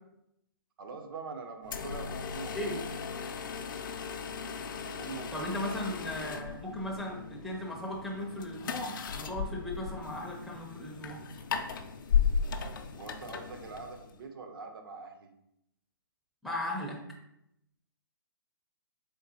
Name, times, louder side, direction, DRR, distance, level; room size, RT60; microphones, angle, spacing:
voice 1, 0.8-2.8 5.0-5.9 6.2-6.5 13.0-15.3, right 4 dB, 70° right, 4 dB, 0.7 m, -44 dB
sound 1, 1.6-14.2, left 7 dB, 60° left, 0.4 m, -36 dB
voice 2, 5.3-11.2 16.4-17.0, left 1 dB, ahead, -4 dB, 0.4 m, -37 dB
3.8 x 3.7 x 2.7 m, 0.80 s
hypercardioid pair, 140°, 12 cm